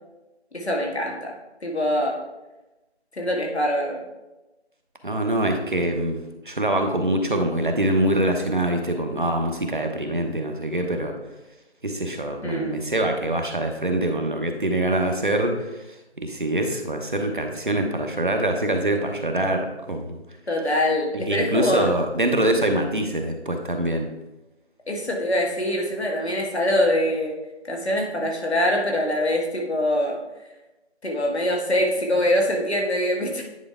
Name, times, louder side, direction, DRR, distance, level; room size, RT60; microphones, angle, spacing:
voice 1, 0.5-1.3 1.6-2.2 3.1-4.0 12.4-12.8 20.5-21.9 24.9-27.3 27.7-30.2 31.0-33.4, left 1 dB, 70° left, 0 dB, 1.9 m, -23 dB
voice 2, 5.0-6.2 6.5-11.1 11.8-15.7 16.2-20.2 21.1-24.1, right 1 dB, 45° right, 4 dB, 0.9 m, -24 dB
9.6 x 4.5 x 3.6 m, 1.0 s
figure-of-eight pair, 175°, 34 cm